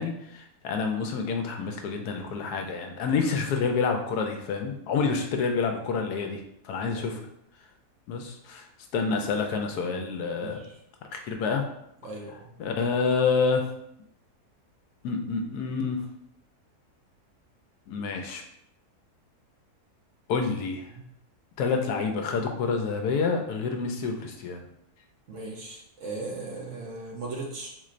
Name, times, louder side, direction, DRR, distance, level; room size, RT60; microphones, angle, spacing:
voice 1, 0.0-7.2 8.1-8.6 8.9-10.6 11.1-11.6 12.6-13.6 15.0-16.0 17.9-18.4 20.3-20.8 21.6-24.7, left 5 dB, 80° left, 4 dB, 1.1 m, -28 dB
voice 2, 10.4-10.7 12.0-12.5 20.9-21.0 25.3-27.7, right 3 dB, 65° right, -1 dB, 0.9 m, -38 dB
3.9 x 3.1 x 2.5 m, 0.75 s
omnidirectional pair, 1.7 m